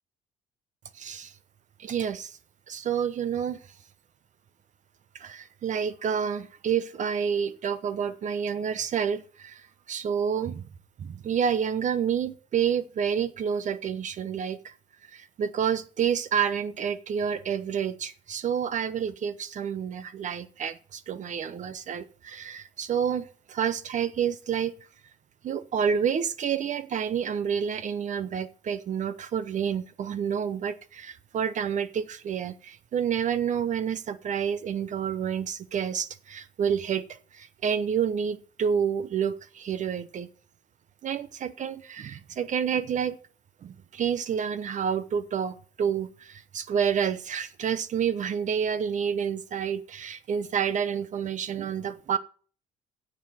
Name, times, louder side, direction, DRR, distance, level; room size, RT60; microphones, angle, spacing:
voice 1, 0.9-1.3 1.8-2.4 2.7-3.6 5.1-10.6 11.0-14.7 15.1-24.7 25.4-40.3 41.0-43.2 43.6-52.2, right 7 dB, 45° right, 14 dB, 0.8 m, -29 dB
10.0 x 7.5 x 6.4 m, 0.41 s
cardioid pair, 110°, 17 cm